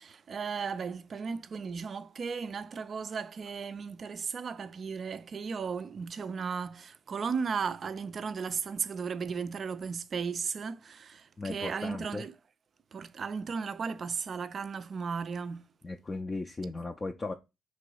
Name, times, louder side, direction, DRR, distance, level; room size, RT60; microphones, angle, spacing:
voice 1, 0.0-12.3 12.9-15.7, right 5 dB, 50° right, 0.4 m, -35 dB
voice 2, 11.4-12.2 15.8-17.3, left 3 dB, 30° left, 0.4 m, -36 dB
3.1 x 2.9 x 4.6 m
hypercardioid pair, 55°, 0 cm